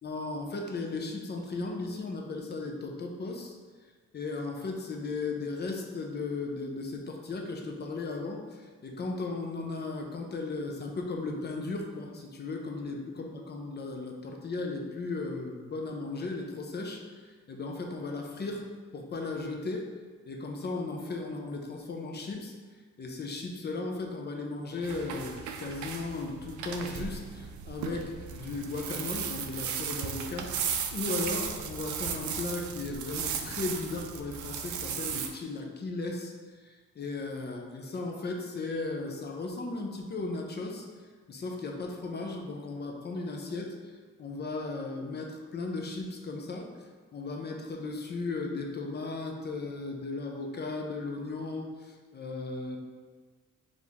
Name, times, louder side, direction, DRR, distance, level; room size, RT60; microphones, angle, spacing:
voice 1, 0.0-3.5 4.1-18.6 18.9-19.9 20.3-22.5 23.0-30.5 30.9-40.9 41.3-46.7 47.1-52.8, left 3 dB, 35° left, 2 dB, 0.6 m, -36 dB
sound 1, 24.8-35.3, right 7 dB, 75° right, 0.5 m, -36 dB
4.3 x 2.6 x 3.5 m, 1.5 s
cardioid pair, 90°, 30 cm